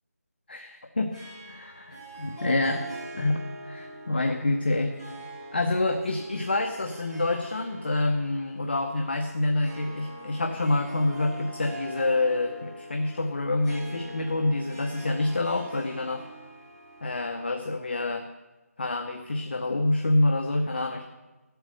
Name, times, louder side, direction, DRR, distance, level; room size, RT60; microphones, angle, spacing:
Harp, 1.1-17.9, right 1 dB, 10° right, 5.5 m, -43 dB
voice 1, 1.5-2.8 3.1-4.9 5.5-16.3 17.0-18.3 18.8-21.0, left 2 dB, 40° left, 4 dB, 0.8 m, -27 dB
14.5 x 8.0 x 6.4 m, 1.1 s
figure-of-eight pair, 175°, 8 cm